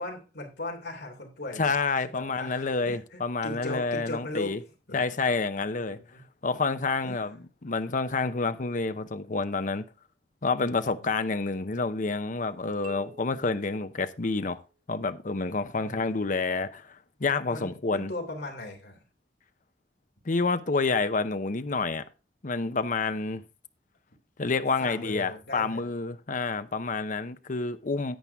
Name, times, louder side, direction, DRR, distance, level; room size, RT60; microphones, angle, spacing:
voice 1, 0.0-4.5 4.9-5.0 5.9-6.2 7.0-7.4 15.8-16.3 17.5-19.0 24.8-25.8, left 2 dB, 65° left, 3.2 m, -38 dB
voice 2, 1.6-4.6 4.9-6.0 6.4-9.8 10.4-14.6 14.9-18.1 20.2-22.0 22.4-23.4 24.4-28.2, left 4 dB, 45° left, 0.8 m, -28 dB
sound 1, 12.8-14.8, right 4 dB, 45° right, 1.8 m, -51 dB
10.5 x 8.7 x 3.5 m
head